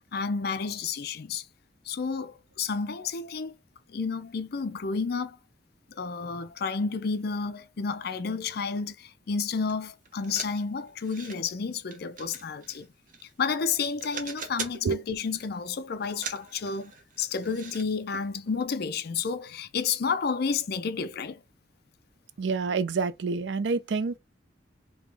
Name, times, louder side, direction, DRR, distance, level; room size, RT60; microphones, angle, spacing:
voice 1, 0.1-1.5 1.9-3.6 3.9-5.4 5.9-12.9 13.4-16.9 17.2-21.4, left 5 dB, 60° left, 0.5 m, -31 dB
sound 1, 9.7-9.8 10.1-11.4 11.9-13.5 13.8-14.9 15.2-15.6 16.0-17.9 18.1-18.3 18.6-18.7, right 5 dB, 45° right, 0.9 m, -41 dB
voice 2, 22.4-24.2, right 4 dB, 70° right, 0.4 m, -27 dB
3.6 x 2.9 x 3.3 m
head